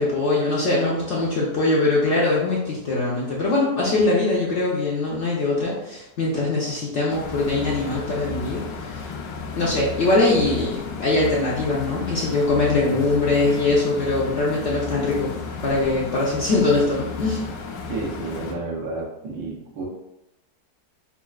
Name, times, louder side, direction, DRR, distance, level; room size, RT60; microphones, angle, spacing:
voice 1, 0.0-9.1 9.6-15.3 15.6-17.4, left 2 dB, 60° left, -5 dB, 0.7 m, -22 dB
sound 1, 7.1-18.5, left 4 dB, 80° left, 1.2 m, -34 dB
voice 2, 17.9-19.9, right 3 dB, 80° right, -3 dB, 1.4 m, -31 dB
5.6 x 2.3 x 2.3 m, 0.89 s
omnidirectional pair, 1.9 m